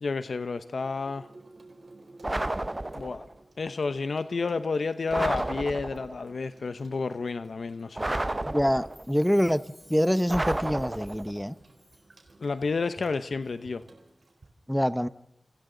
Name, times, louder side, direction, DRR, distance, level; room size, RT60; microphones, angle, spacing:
voice 1, 0.0-1.3 2.9-3.3 3.6-8.1 12.4-13.8, left 4 dB, 85° left, 11 dB, 0.9 m, -30 dB
Water tap faucet / Sink (filling or washing), 0.7-14.5, right 2 dB, 70° right, 4.3 m, -55 dB
sound 1, 2.2-3.3 5.1-6.2 8.0-9.1 10.3-11.4, right 1 dB, 30° right, 0.8 m, -31 dB
voice 2, 8.4-9.6 9.9-11.5 14.7-15.1, equal, 5° left, 13 dB, 1.0 m, -25 dB
Chime, 8.7-12.3 12.6-12.7, left 1 dB, 25° left, 3.7 m, -57 dB
29.5 x 25.0 x 3.9 m, 0.79 s
wide cardioid pair, 60°, 0 cm